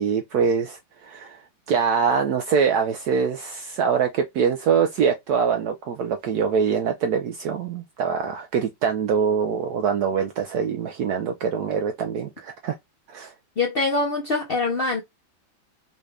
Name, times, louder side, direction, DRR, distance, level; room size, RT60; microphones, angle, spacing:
voice 1, 0.0-1.4 1.7-12.7 13.1-13.3, right 6 dB, 80° right, 0.8 m, -24 dB
voice 2, 13.6-15.0, left 3 dB, 80° left, 0.5 m, -24 dB
4.0 x 2.4 x 3.3 m
omnidirectional pair, 2.2 m